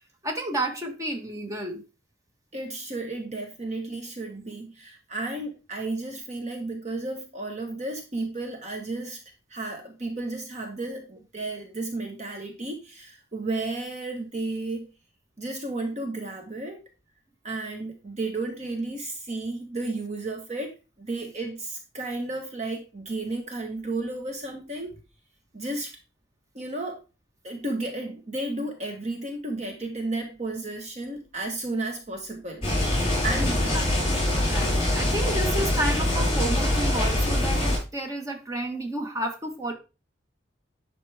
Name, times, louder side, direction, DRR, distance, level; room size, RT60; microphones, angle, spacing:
voice 1, 0.2-1.8 33.1-39.7, right 1 dB, 20° right, 3 dB, 1.6 m, -31 dB
voice 2, 2.5-9.2 9.5-14.9 15.4-16.8 17.4-25.0 25.5-25.9 26.5-27.0 27.4-32.9 33.2-33.6, right 2 dB, 40° right, 4 dB, 1.3 m, -33 dB
sound 1, 32.6-37.8, left 1 dB, 30° left, 5.1 m, -24 dB
10.0 x 6.0 x 3.4 m, 0.30 s
head